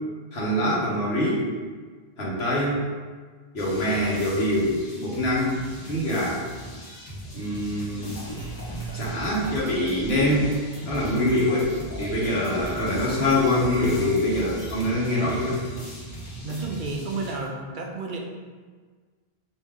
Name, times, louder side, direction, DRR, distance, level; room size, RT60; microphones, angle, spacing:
voice 1, 0.3-1.4 2.2-2.8 3.5-6.4 7.3-8.2 8.9-10.5 10.8-15.5, left 1 dB, 85° left, -6 dB, 1.5 m, -24 dB
sound 1, 3.6-17.3, right 1 dB, 55° left, 1.3 m, -40 dB
sound 2, 8.0-14.9, equal, 20° left, 0.7 m, -38 dB
voice 2, 16.4-18.2, right 3 dB, 60° right, 0 dB, 0.7 m, -31 dB
5.3 x 2.7 x 3.6 m, 1.5 s
omnidirectional pair, 1.0 m